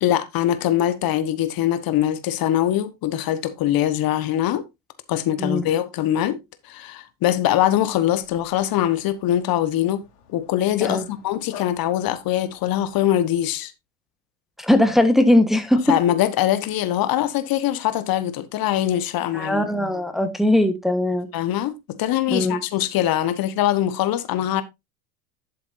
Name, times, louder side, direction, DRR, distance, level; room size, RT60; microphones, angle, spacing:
voice 1, 0.0-4.6 5.1-6.4 6.6-10.0 10.3-13.7 15.9-19.7 21.3-24.6, left 12 dB, 45° left, 1.3 m, -22 dB
Dog, 7.7-13.0, left 9 dB, 70° left, 3.3 m, -45 dB
voice 2, 14.6-15.8 19.3-21.3 22.3-22.6, left 1 dB, ahead, 1.3 m, -19 dB
12.0 x 7.4 x 2.7 m
hypercardioid pair, 75°, 49 cm